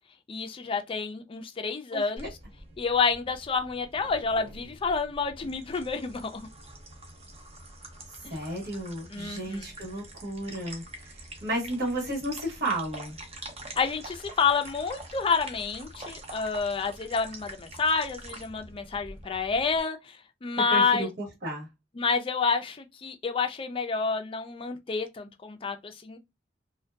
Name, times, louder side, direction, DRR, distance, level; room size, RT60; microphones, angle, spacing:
voice 1, 0.3-2.3 2.8-6.5 9.1-9.7 13.8-20.2 20.4-21.1 22.0-26.2, left 5 dB, 30° left, 0.4 m, -29 dB
voice 2, 1.9-2.3 8.3-11.1 11.4-13.2 20.7-21.7, right 1 dB, 60° right, 1.1 m, -33 dB
sound 1, 2.2-19.8, right 1 dB, 35° right, 0.6 m, -46 dB
2.6 x 2.2 x 2.2 m
head